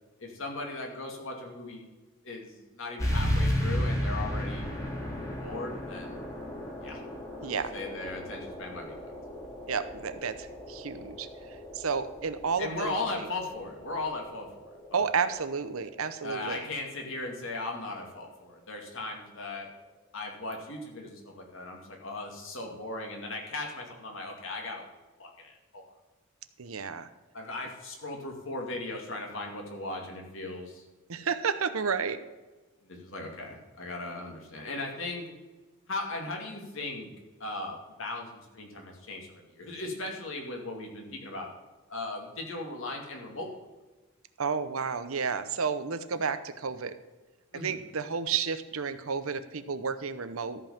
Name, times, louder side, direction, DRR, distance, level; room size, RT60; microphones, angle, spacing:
voice 1, 0.2-1.8 2.2-4.7 5.4-6.2 6.8-7.0 7.7-8.9 12.6-14.5 14.9-15.0 16.2-19.7 20.1-24.9 25.2-25.8 27.3-30.8 32.8-35.3 35.9-37.1 37.4-41.5 41.9-43.5 47.5-47.8, left 2 dB, 60° left, 1 dB, 2.4 m, -37 dB
sound 1, 3.0-18.1, equal, 15° left, 2.2 m, -35 dB
voice 2, 7.4-7.7 9.7-11.3 11.7-13.3 14.9-16.7 26.6-27.1 31.1-32.2 44.4-46.9 47.5-50.6, right 5 dB, 75° right, 12 dB, 0.8 m, -31 dB
13.5 x 5.5 x 7.2 m, 1.2 s
head